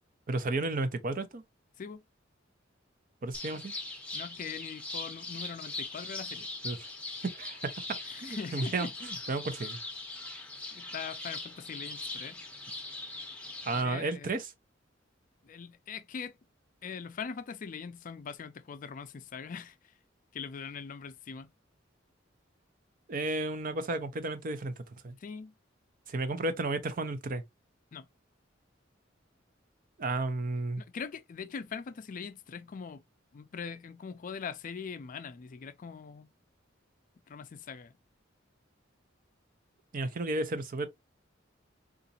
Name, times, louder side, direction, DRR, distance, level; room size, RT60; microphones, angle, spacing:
voice 1, 0.3-1.4 3.2-3.7 6.6-6.8 7.3-7.8 8.2-9.8 13.6-14.5 23.1-25.2 26.1-27.4 30.0-30.8 39.9-40.9, right 2 dB, 45° right, 0.5 m, -33 dB
sound 1, 3.3-13.8, left 2 dB, 5° left, 0.7 m, -41 dB
voice 2, 4.1-6.5 8.1-8.9 10.7-12.4 13.7-14.3 15.4-16.4 16.8-19.9 20.3-21.5 25.2-25.5 27.9-28.1 30.8-33.0 33.3-36.3 37.3-37.9, left 6 dB, 45° left, 0.4 m, -42 dB
3.9 x 2.4 x 2.7 m
head